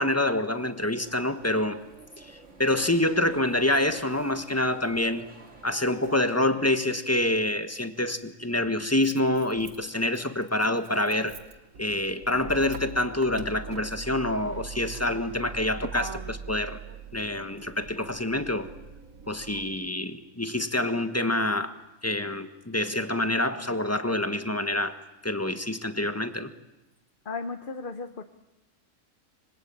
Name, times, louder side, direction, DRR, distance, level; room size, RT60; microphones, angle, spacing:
voice 1, 0.0-1.8 2.2-5.2 5.6-11.4 11.8-16.8 17.1-18.7 19.3-21.7 22.0-25.0 25.2-26.5, left 1 dB, 10° left, 9 dB, 1.5 m, -27 dB
atrio serralves, 0.5-6.5, right 3 dB, 60° right, 3.0 m, -51 dB
Motor vehicle (road), 7.4-7.5 8.6-19.7, right 5 dB, 80° right, 1.8 m, -42 dB
voice 2, 27.2-28.2, left 4 dB, 40° left, 8 dB, 1.3 m, -35 dB
26.0 x 25.0 x 8.9 m, 1.0 s
omnidirectional pair, 1.4 m